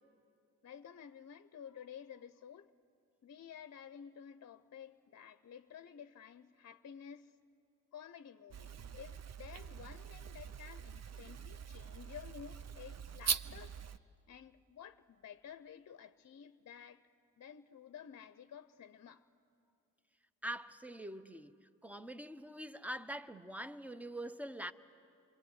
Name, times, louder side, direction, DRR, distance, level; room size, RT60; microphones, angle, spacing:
voice 1, 0.6-2.7 3.2-7.4 7.9-13.8 14.3-17.1 17.4-19.3, left 8 dB, 50° left, 0.8 m, -52 dB
sound 1, 8.5-14.0, right 7 dB, 50° right, 0.8 m, -42 dB
voice 2, 20.4-21.6 21.8-24.7, right 1 dB, 5° right, 1.1 m, -44 dB
27.5 x 23.0 x 9.5 m
supercardioid pair, 50°, 34 cm